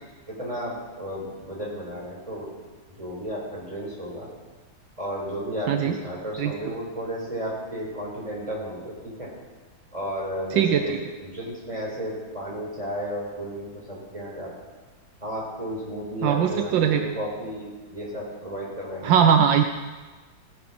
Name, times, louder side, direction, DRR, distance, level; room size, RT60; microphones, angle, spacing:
voice 1, 0.3-2.5 2.9-4.3 5.0-9.3 9.9-14.5 15.2-19.2, equal, 15° right, -4 dB, 4.6 m, -33 dB
voice 2, 10.6-11.0 16.2-17.1 19.0-19.6, right 8 dB, 75° right, 6 dB, 1.4 m, -20 dB
19.5 x 7.8 x 6.0 m, 1.3 s
omnidirectional pair, 2.1 m